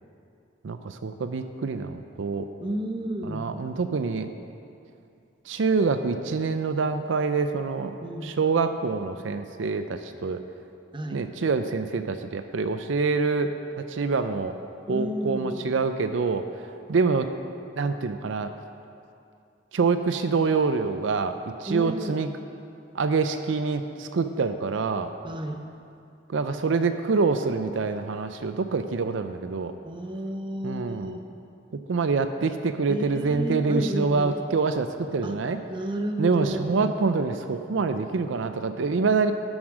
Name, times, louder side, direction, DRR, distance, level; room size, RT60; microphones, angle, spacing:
voice 1, 0.6-2.5 3.2-4.3 5.5-8.0 8.2-10.4 11.1-13.5 13.9-14.5 14.9-17.3 17.8-18.6 19.7-21.3 21.6-22.3 22.9-25.1 26.3-29.8 30.6-31.1 31.9-35.6 36.2-39.3, right 4 dB, 70° right, 9 dB, 0.5 m, -26 dB
voice 2, 2.6-3.5 8.0-8.3 10.9-11.2 14.9-15.7 21.7-22.2 25.2-25.6 29.8-31.3 32.9-34.4 35.2-35.4 35.7-37.0, right 1 dB, 25° right, 5 dB, 0.7 m, -32 dB
11.0 x 7.3 x 6.2 m, 2.6 s
head